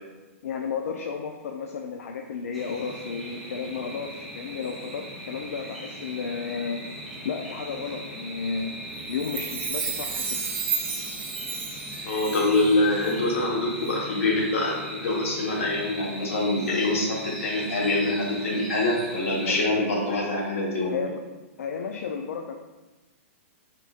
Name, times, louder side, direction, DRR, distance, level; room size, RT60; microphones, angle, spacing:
voice 1, 0.4-6.8 7.2-8.8 9.1-10.4 19.4-19.6 20.9-21.2 21.6-22.5, left 5 dB, 85° left, 3 dB, 0.3 m, -33 dB
sound 1, 2.5-19.7, right 1 dB, ahead, 0.6 m, -39 dB
Chime, 9.1-12.7 13.0-13.1, right 6 dB, 60° right, 0.7 m, -32 dB
voice 2, 12.1-21.0, left 2 dB, 70° left, -2 dB, 1.1 m, -25 dB
4.0 x 3.6 x 2.4 m, 1.2 s
hypercardioid pair, 160°, 8 cm